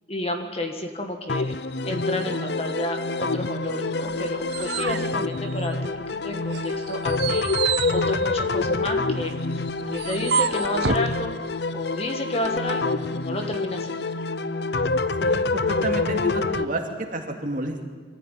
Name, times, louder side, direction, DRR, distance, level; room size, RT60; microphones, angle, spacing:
voice 1, 0.1-1.5 1.8-5.9 6.2-7.5 7.9-9.3 9.8-11.3 11.7-14.0, left 1 dB, 30° left, 4 dB, 1.7 m, -31 dB
sound 1, 1.3-16.7, left 3 dB, 60° left, 0.7 m, -26 dB
sound 2, 4.1-6.1 6.5-11.1, right 6 dB, 60° right, 0.6 m, -30 dB
voice 2, 15.2-17.8, right 1 dB, 45° right, 2 dB, 2.6 m, -30 dB
23.5 x 15.0 x 9.2 m, 1.5 s
head